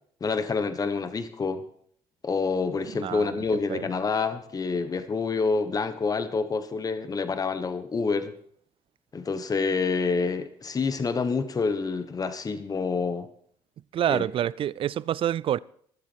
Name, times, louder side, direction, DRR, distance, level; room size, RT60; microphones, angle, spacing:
voice 1, 0.2-1.6 2.2-8.3 9.1-13.3 14.1-14.2, left 4 dB, 35° left, 1.3 m, -27 dB
voice 2, 3.0-3.4 3.7-3.9 13.9-15.6, right 11 dB, 55° right, 0.4 m, -27 dB
21.5 x 7.5 x 4.5 m
supercardioid pair, 80°, 11 cm